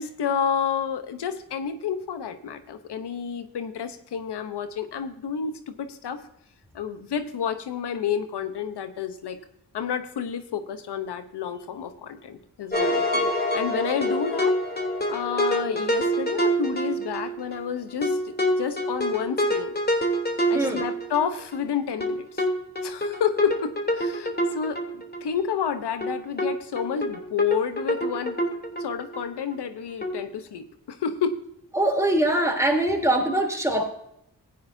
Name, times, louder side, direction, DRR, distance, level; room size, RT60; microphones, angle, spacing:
voice 1, 0.0-6.2 6.7-9.4 9.7-14.5 15.1-19.7 20.5-22.4 22.8-24.8 25.2-28.4 28.8-31.4, left 7 dB, 85° left, 10 dB, 1.0 m, -30 dB
sound 1, 12.7-17.6 18.0-21.6 22.0-25.2 25.5-25.6 26.0-26.1 26.4-26.5 26.8-29.2 29.5-29.6 30.0-30.1, equal, 25° left, 3.1 m, -26 dB
voice 2, 20.5-20.8 31.7-33.9, right 1 dB, 5° right, 1 dB, 3.3 m, -23 dB
16.0 x 9.4 x 2.7 m, 0.74 s
cardioid pair, 45°, 39 cm